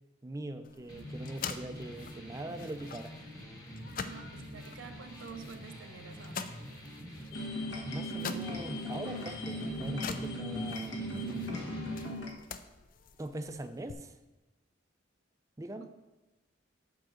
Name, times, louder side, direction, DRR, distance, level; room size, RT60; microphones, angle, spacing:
voice 1, 0.2-3.1 7.8-12.0 13.2-14.1 15.6-15.9, right 1 dB, 15° right, 8 dB, 0.4 m, -42 dB
sound 1, 0.6-13.9, left 6 dB, 45° left, 0.4 m, -46 dB
sound 2, 0.9-12.0, equal, 20° left, 1.5 m, -45 dB
voice 2, 4.1-6.5 15.8-15.9, right 5 dB, 80° right, 6 dB, 0.6 m, -49 dB
sound 3, 7.3-12.3, equal, 65° left, 1.2 m, -38 dB
7.7 x 4.7 x 6.2 m, 1.1 s
head